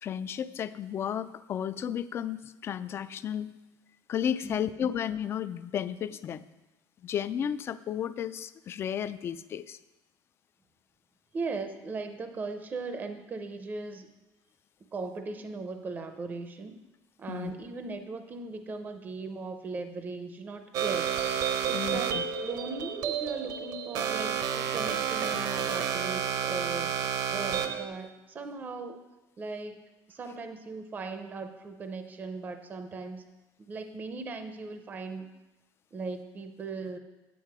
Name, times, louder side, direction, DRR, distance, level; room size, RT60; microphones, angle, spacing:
voice 1, 0.0-3.5 4.1-6.4 7.0-9.8 17.3-17.5 21.7-22.2, left 9 dB, 30° left, 15 dB, 0.3 m, -33 dB
voice 2, 4.4-4.9 11.3-14.1 14.9-16.8 17.2-21.1 21.7-26.9 27.3-29.0 29.4-29.8 30.1-33.2 33.6-35.3 35.9-37.0, right 3 dB, 20° right, 8 dB, 0.6 m, -38 dB
sound 1, 20.7-27.9, right 8 dB, 50° right, 0.8 m, -30 dB
9.2 x 8.0 x 4.8 m, 1.0 s
cardioid pair, 170°, 8 cm